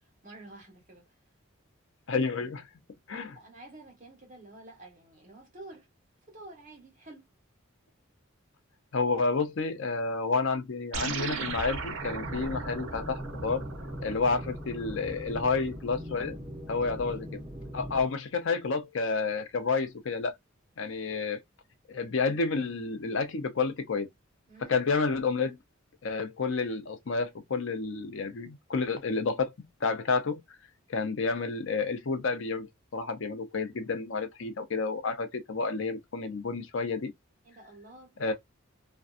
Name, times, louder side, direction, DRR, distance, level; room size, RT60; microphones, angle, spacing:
voice 1, 0.2-1.0 3.3-5.9 6.3-7.3 16.8-17.2 24.5-24.9 37.4-38.3, right 2 dB, 40° right, 1.1 m, -50 dB
voice 2, 2.1-2.6 3.1-3.4 8.9-13.6 14.0-16.4 16.7-17.3 17.7-20.4 20.8-21.4 21.9-24.1 24.7-25.6 26.0-29.5 29.8-30.4 30.9-37.1 38.2-38.3, left 4 dB, 65° left, 0.5 m, -30 dB
sound 1, 10.9-15.6, right 4 dB, 65° right, 0.7 m, -38 dB
sound 2, 12.0-18.0, equal, 20° right, 0.6 m, -40 dB
2.6 x 2.2 x 2.4 m
head